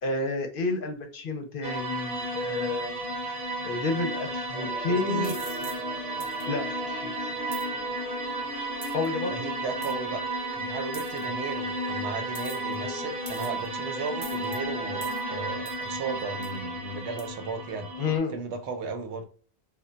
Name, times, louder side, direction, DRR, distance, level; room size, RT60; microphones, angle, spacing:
voice 1, 0.0-3.4 3.6-5.3 6.5-7.3 8.9-9.3 18.0-18.4, left 3 dB, 60° left, 0.7 m, -30 dB
sound 1, 1.6-18.2, right 2 dB, 60° right, 1.0 m, -33 dB
sound 2, 4.5-15.5, left 2 dB, 20° left, 0.8 m, -42 dB
voice 2, 4.9-5.3 9.2-10.2 10.5-17.9 18.3-19.2, right 4 dB, 90° right, 0.9 m, -35 dB
sound 3, 5.2-5.8 6.2-6.4 7.5-7.7 8.8-9.1 9.8-9.9 10.9-11.2 12.3-12.7 13.3-13.7 14.2-14.6 15.0-15.2 15.7-15.8 16.4-16.6 17.2-17.3, right 4 dB, 40° right, 0.3 m, -43 dB
2.2 x 2.1 x 3.7 m
omnidirectional pair, 1.1 m